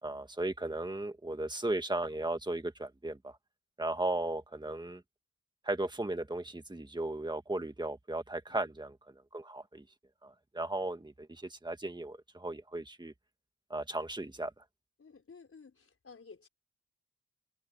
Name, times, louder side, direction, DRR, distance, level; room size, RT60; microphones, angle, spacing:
voice 1, 0.0-3.4 3.8-5.0 5.6-9.8 10.2-13.1 13.7-14.5, right 2 dB, 15° right, 1.7 m, -36 dB
voice 2, 15.0-16.5, left 5 dB, 45° left, 5.3 m, -54 dB
open air
wide cardioid pair, 150°, 32 cm